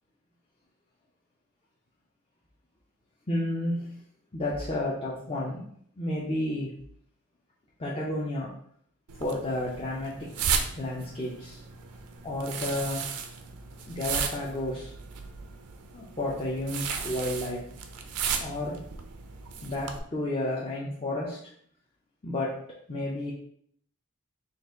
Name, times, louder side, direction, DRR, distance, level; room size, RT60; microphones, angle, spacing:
voice 1, 3.3-4.0 4.3-5.7 6.0-6.8 7.8-8.5 9.2-10.3 10.8-11.6 12.2-13.1 13.8-14.9 15.9-17.7 18.4-18.8 19.6-21.4 22.2-22.6 22.9-23.3, left 1 dB, 25° left, -4 dB, 0.5 m, -31 dB
sound 1, 9.1-20.0, right 6 dB, 85° right, 0.5 m, -35 dB
4.0 x 2.5 x 3.6 m, 0.64 s
head